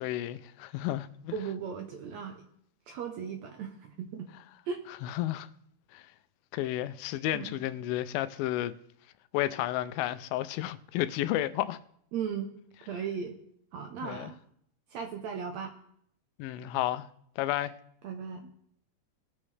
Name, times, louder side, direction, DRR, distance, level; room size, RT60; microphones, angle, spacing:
voice 1, 0.0-1.3 5.0-5.5 5.9-6.0 6.5-8.7 9.3-11.8 14.0-14.3 16.4-17.1 17.4-17.7, left 14 dB, 90° left, 2.4 m, -32 dB
voice 2, 1.3-2.4 2.9-4.3 4.7-4.8 7.3-7.6 12.1-12.5 12.9-13.4 13.7-14.4 14.9-15.7 18.0-18.5, right 6 dB, 80° right, 1.6 m, -37 dB
19.5 x 7.3 x 3.2 m
omnidirectional pair, 4.1 m